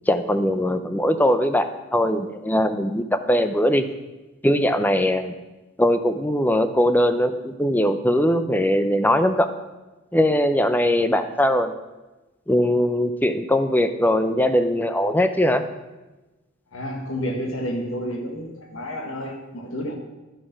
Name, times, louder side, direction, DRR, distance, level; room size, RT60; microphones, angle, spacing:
voice 1, 0.1-3.9 4.4-5.3 5.8-9.5 10.1-11.7 12.5-15.6, left 1 dB, 10° left, 9 dB, 0.5 m, -20 dB
voice 2, 16.7-19.9, equal, 70° left, 3 dB, 1.8 m, -30 dB
11.5 x 6.4 x 6.0 m, 1.1 s
head